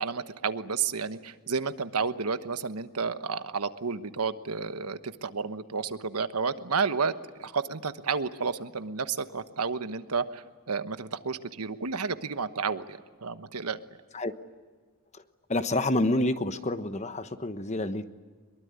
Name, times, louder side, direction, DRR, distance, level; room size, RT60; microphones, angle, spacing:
voice 1, 0.0-7.1 7.4-13.8, right 5 dB, 85° right, 10 dB, 1.2 m, -31 dB
voice 2, 15.5-18.1, left 1 dB, 30° left, 10 dB, 1.1 m, -28 dB
23.5 x 22.5 x 9.7 m, 1.5 s
head